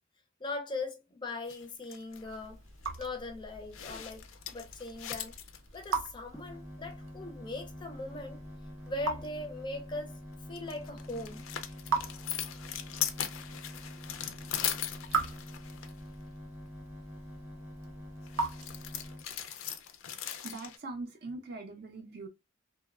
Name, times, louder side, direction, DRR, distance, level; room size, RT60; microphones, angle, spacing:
voice 1, 0.4-2.6 3.0-5.3 5.7-8.4 8.9-10.2 10.5-11.4, left 2 dB, 25° left, 0.4 m, -40 dB
sound 1, 1.5-2.5 2.8-3.0 3.7-5.9 10.3-16.0 18.3-20.8, left 10 dB, 90° left, 0.4 m, -39 dB
Raindrop / Drip, 2.1-19.3, right 4 dB, 85° right, 0.7 m, -41 dB
sound 2, 6.3-19.2, left 1 dB, 10° right, 0.8 m, -47 dB
voice 2, 20.4-22.3, right 3 dB, 50° right, 0.5 m, -42 dB
2.9 x 2.1 x 2.3 m
head